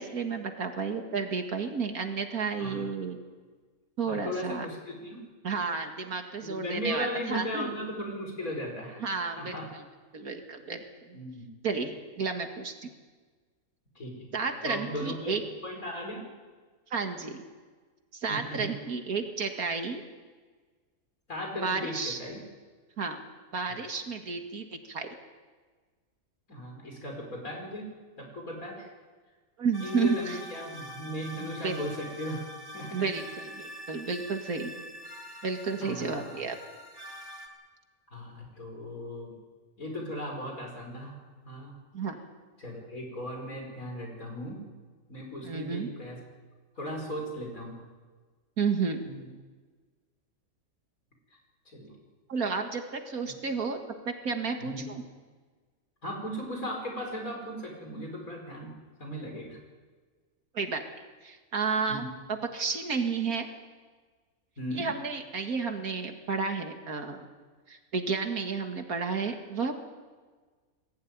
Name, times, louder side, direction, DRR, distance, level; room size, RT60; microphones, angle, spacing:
voice 1, 0.0-3.2 4.0-4.7 5.4-7.7 9.0-9.5 10.1-11.2 11.6-12.9 14.3-15.4 16.9-17.4 18.1-20.0 21.5-22.2 23.0-23.2 23.5-25.1 29.6-30.4 31.4-31.8 32.9-34.7 35.4-36.6 41.9-42.2 45.4-45.9 48.6-49.0 52.3-53.8 54.1-55.0 60.5-60.8 61.2-62.0 62.3-63.5 64.8-67.3 67.7-69.8, right 5 dB, 90° right, 5 dB, 2.5 m, -32 dB
voice 2, 2.6-2.9 4.1-5.2 5.7-5.8 6.4-9.0 9.4-9.7 11.1-11.5 14.0-14.3 14.6-15.4 15.6-16.2 18.3-18.7 21.3-22.4 26.5-27.9 28.2-28.9 29.8-32.5 32.7-33.1 35.8-36.4 38.1-39.3 39.8-41.2 41.4-41.7 42.6-44.6 45.1-46.2 46.8-47.8 49.0-49.3 51.7-51.9 53.3-53.4 54.6-54.8 56.0-58.7 59.0-59.6 61.9-62.1 64.6-64.9, equal, 70° left, 1 dB, 5.7 m, -37 dB
sound 1, 29.7-37.5, equal, 15° right, 2.7 m, -45 dB
21.0 x 15.5 x 9.6 m, 1.4 s
omnidirectional pair, 1.5 m